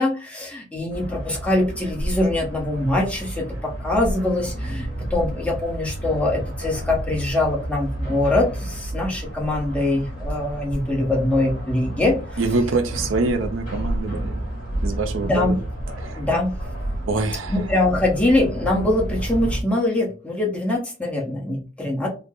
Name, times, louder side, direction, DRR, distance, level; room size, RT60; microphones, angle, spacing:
voice 1, 0.0-12.1 15.2-15.6 16.2-16.5 17.5-22.1, left 2 dB, 5° left, 0.9 m, -23 dB
sound 1, 0.9-19.6, right 1 dB, 45° left, 1.9 m, -30 dB
voice 2, 12.4-14.4 14.8-15.6 16.0-16.2 17.1-17.7, right 3 dB, 80° right, 0.6 m, -25 dB
3.8 x 2.1 x 3.6 m
head